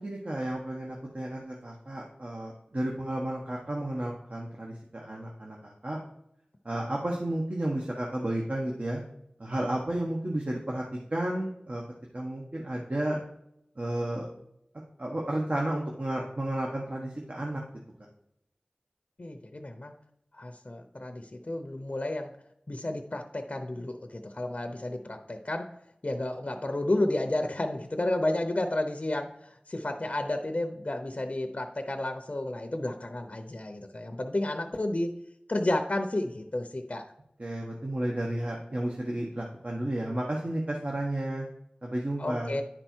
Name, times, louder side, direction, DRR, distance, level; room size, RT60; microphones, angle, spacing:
voice 1, 0.0-6.0 6.6-9.0 9.4-10.8 11.1-11.8 12.1-13.2 13.8-14.3 15.0-17.6 37.4-41.4 41.8-42.6, right 1 dB, 50° right, -2 dB, 1.2 m, -32 dB
voice 2, 19.2-19.9 20.3-22.3 22.7-25.8 26.0-35.1 35.5-37.1 42.2-42.6, left 1 dB, 45° left, 5 dB, 0.6 m, -31 dB
10.0 x 4.4 x 4.4 m, 0.79 s
wide cardioid pair, 50°, 3 cm